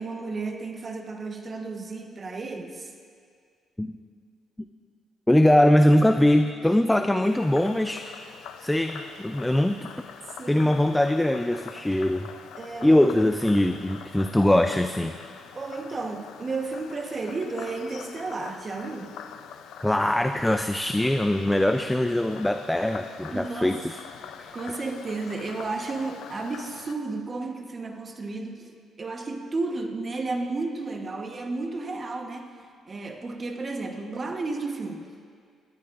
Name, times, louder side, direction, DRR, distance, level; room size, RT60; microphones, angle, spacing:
voice 1, 0.0-2.9 10.4-10.8 12.5-13.4 15.5-19.2 23.3-23.8 24.5-35.1, right 3 dB, 35° right, 4 dB, 1.2 m, -33 dB
voice 2, 5.3-8.0 8.6-9.8 10.5-12.3 12.8-15.1 19.8-24.0 24.4-24.5, left 1 dB, 10° left, 7 dB, 0.4 m, -22 dB
Frog, 7.2-26.9, left 8 dB, 85° left, 0.6 m, -44 dB
20.0 x 13.5 x 2.6 m, 2.2 s
cardioid pair, 90°, 0 cm